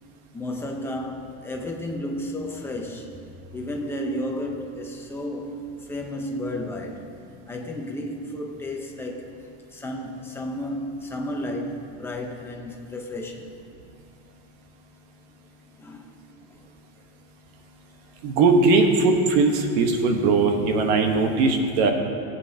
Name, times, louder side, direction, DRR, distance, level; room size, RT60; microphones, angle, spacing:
voice 1, 0.3-3.2 3.5-7.1 7.5-9.3 9.7-13.5 15.7-16.1 16.5-16.7 18.1-18.2, left 1 dB, 5° left, 0 dB, 0.8 m, -32 dB
voice 2, 18.2-21.9, right 3 dB, 70° right, 4 dB, 1.2 m, -19 dB
18.0 x 8.3 x 2.8 m, 2.5 s
cardioid pair, 170°, 35 cm